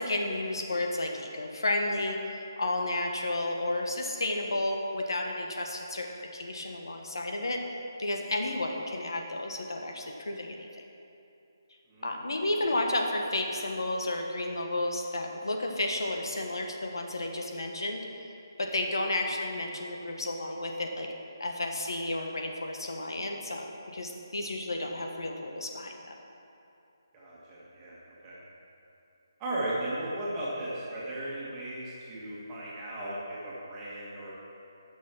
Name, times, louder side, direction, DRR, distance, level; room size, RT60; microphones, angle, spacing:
voice 1, 0.0-6.1 6.3-7.6 8.0-10.8 12.0-18.3 18.6-21.1 21.4-26.1, left 2 dB, 85° left, 2 dB, 1.5 m, -32 dB
voice 2, 11.9-12.2 27.1-28.0 28.2-28.4 29.4-34.3, right 1 dB, 15° right, -8 dB, 1.8 m, -36 dB
11.5 x 6.3 x 6.0 m, 2.7 s
hypercardioid pair, 175°, 2 cm